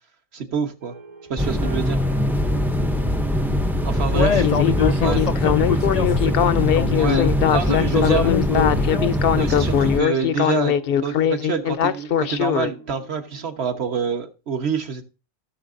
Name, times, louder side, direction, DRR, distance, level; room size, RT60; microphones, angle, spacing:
voice 1, 0.3-0.9 1.3-2.0 3.8-4.4 5.0-5.2 7.0-8.3 9.4-10.8 11.0-15.0, right 6 dB, 55° right, 1.4 m, -26 dB
sound 1, 0.8-14.1, right 2 dB, 90° right, 2.0 m, -45 dB
sound 2, 1.4-10.0, left 1 dB, 5° right, 0.4 m, -22 dB
voice 2, 4.1-7.3 7.7-9.1, left 6 dB, 75° left, 0.3 m, -24 dB
Speech synthesizer, 4.4-12.7, left 9 dB, 60° left, 0.7 m, -21 dB
16.0 x 6.6 x 2.6 m
omnidirectional pair, 1.3 m